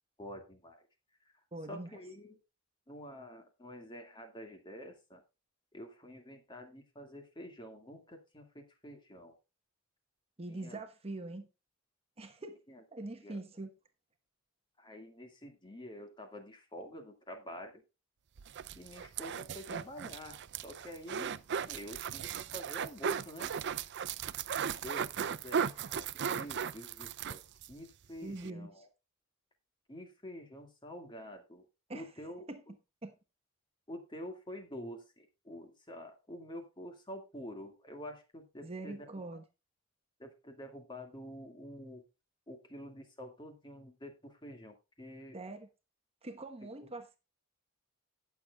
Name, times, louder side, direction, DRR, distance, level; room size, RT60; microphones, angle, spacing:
voice 1, 0.2-0.8 1.3-1.4 1.7-2.4 2.9-5.2 5.7-9.4 10.5-10.8 12.7-12.8 13.2-13.4 14.8-17.8 18.8-21.4 21.7-23.5 24.8-28.9 29.9-31.7 31.9-32.5 33.9-39.1 40.2-42.0 42.5-45.4 46.8-46.9, equal, 20° left, 2.0 m, -48 dB
voice 2, 1.5-2.0 10.4-11.5 12.2-12.6 12.9-13.7 28.2-28.9 31.9-32.1 32.5-32.6 33.0-33.1 38.6-39.4 45.3-45.7 46.2-47.2, right 2 dB, 30° right, 1.1 m, -43 dB
sound 1, 18.4-27.7 28.0-28.1 28.4-28.5, right 7 dB, 55° right, 0.5 m, -37 dB
18.0 x 7.1 x 2.3 m
head